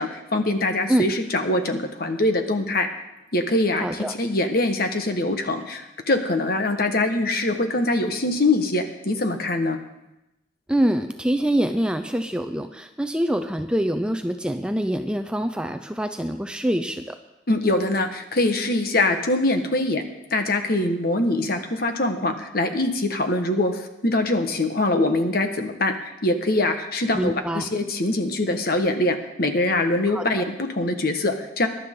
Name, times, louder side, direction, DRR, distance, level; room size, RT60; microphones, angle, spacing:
voice 1, 0.0-2.9 3.3-9.8 17.5-25.9 26.2-31.7, left 2 dB, 50° left, 6 dB, 1.4 m, -23 dB
voice 2, 3.8-4.1 10.7-17.2 27.1-27.7 30.1-30.4, right 1 dB, 5° right, 7 dB, 0.5 m, -25 dB
21.0 x 11.5 x 3.8 m, 0.94 s
head